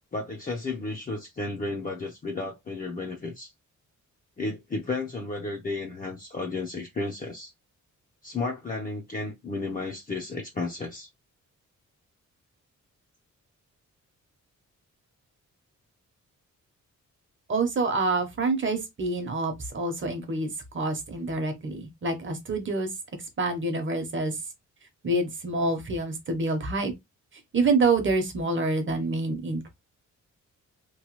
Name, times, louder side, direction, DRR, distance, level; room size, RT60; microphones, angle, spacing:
voice 1, 0.1-3.5 4.4-7.5 8.2-11.1, left 3 dB, 30° left, 0.6 m, -33 dB
voice 2, 17.5-22.9 23.4-24.4 25.0-26.9 27.5-29.6, right 3 dB, 40° right, 0.9 m, -27 dB
3.0 x 2.2 x 3.0 m
wide cardioid pair, 135°, 30 cm